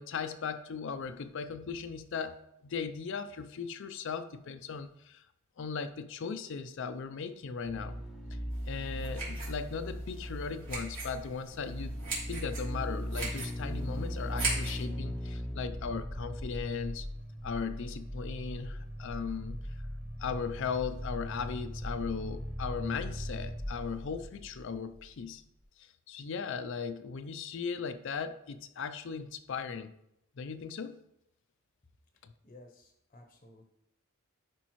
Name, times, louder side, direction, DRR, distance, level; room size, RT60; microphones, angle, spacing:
voice 1, 0.0-2.4 2.6-5.3 5.6-8.0 8.3-8.4 8.7-12.0 12.3-17.1 17.4-19.8 20.2-25.4 25.8-29.9 30.4-31.0 32.2-32.3, left 5 dB, 60° left, 10 dB, 0.4 m, -37 dB
sound 1, 7.6-25.2 25.4-25.5, equal, ahead, 0.7 m, -39 dB
sound 2, 8.5-14.8, right 3 dB, 60° right, 3.0 m, -40 dB
voice 2, 32.4-33.6, left 2 dB, 30° left, 3 dB, 0.8 m, -55 dB
11.0 x 5.1 x 3.0 m, 0.80 s
head